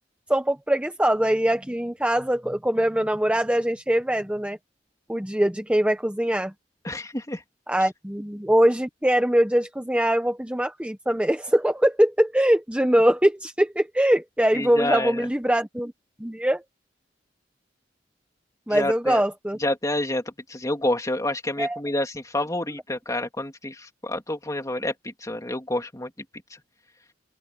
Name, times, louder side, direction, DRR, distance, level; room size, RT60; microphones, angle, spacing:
voice 1, 0.3-4.6 5.1-6.5 7.7-15.9 16.2-16.6 18.7-19.6 21.6-21.8, right 1 dB, 5° right, 1.0 m, -22 dB
voice 2, 6.8-7.4 14.5-15.3 18.7-19.2 19.6-20.2 20.5-26.1, left 1 dB, 20° left, 2.9 m, -28 dB
open air
head